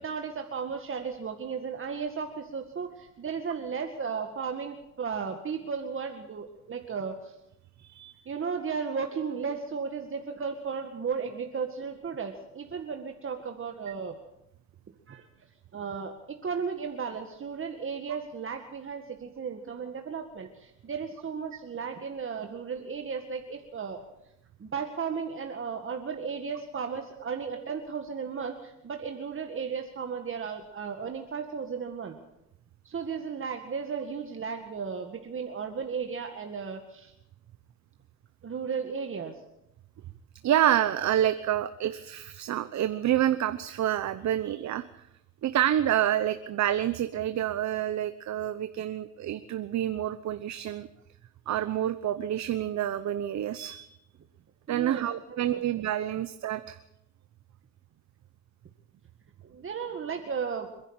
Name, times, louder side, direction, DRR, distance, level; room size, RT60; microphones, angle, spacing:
voice 1, 0.0-7.3 8.3-14.2 15.1-15.3 15.7-24.1 24.6-32.2 32.8-37.1 38.4-39.4 54.7-55.1 55.5-55.6 59.4-60.7, right 6 dB, 45° right, 4 dB, 2.0 m, -35 dB
voice 2, 7.8-8.1 40.4-44.8 45.4-50.9 51.5-53.9 54.7-56.8, right 11 dB, 65° right, 10 dB, 1.0 m, -28 dB
26.5 x 11.0 x 9.0 m, 0.87 s
cardioid pair, 90°, 30 cm